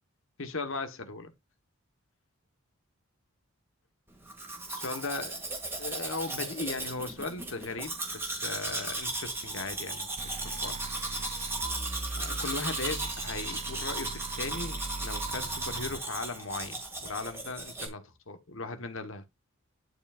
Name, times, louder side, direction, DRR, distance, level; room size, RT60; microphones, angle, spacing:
voice 1, 0.4-1.3 4.7-5.4 5.8-10.8 11.2-11.4 12.2-19.3, left 3 dB, 65° left, 1.3 m, -38 dB
Domestic sounds home sounds, 4.3-17.9, right 2 dB, 10° right, 2.3 m, -36 dB
sound 1, 10.2-16.0, right 3 dB, 30° right, 0.5 m, -41 dB
11.5 x 4.9 x 2.5 m
head